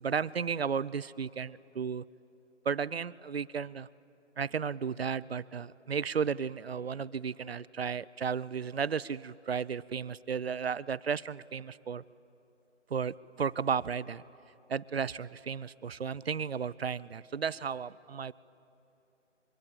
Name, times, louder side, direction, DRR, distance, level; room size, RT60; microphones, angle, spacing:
voice 1, 0.0-2.0 2.7-3.9 4.4-12.0 12.9-14.2 14.7-18.3, right 6 dB, 55° right, 18 dB, 0.5 m, -34 dB
24.5 x 23.0 x 8.4 m, 2.8 s
hypercardioid pair, 165°, 37 cm